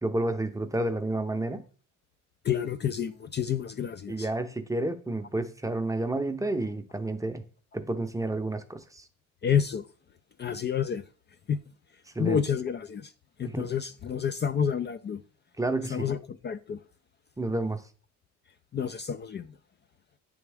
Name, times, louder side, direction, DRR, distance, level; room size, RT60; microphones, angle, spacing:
voice 1, 0.0-1.6 4.1-7.4 7.7-9.0 12.1-12.4 13.4-13.7 15.6-16.1 17.4-17.8, right 2 dB, 10° right, 0.7 m, -30 dB
voice 2, 2.4-4.3 9.4-9.8 10.4-11.0 11.5-11.6 12.2-13.1 13.4-15.2 15.9-16.2 16.4-16.8 18.7-19.5, left 8 dB, 35° left, 0.4 m, -29 dB
8.5 x 3.5 x 3.4 m
cardioid pair, 90°, 30 cm